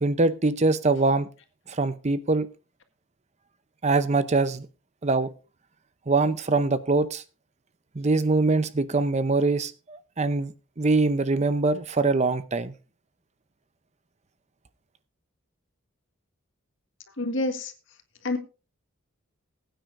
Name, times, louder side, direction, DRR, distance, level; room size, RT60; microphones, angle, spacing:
voice 1, 0.0-1.3 1.7-2.5 3.8-4.7 5.0-5.3 6.1-7.2 8.0-12.7, right 3 dB, 35° right, 0.7 m, -23 dB
voice 2, 17.2-17.7 18.2-18.4, left 2 dB, 65° left, 1.8 m, -27 dB
20.5 x 9.2 x 2.6 m
head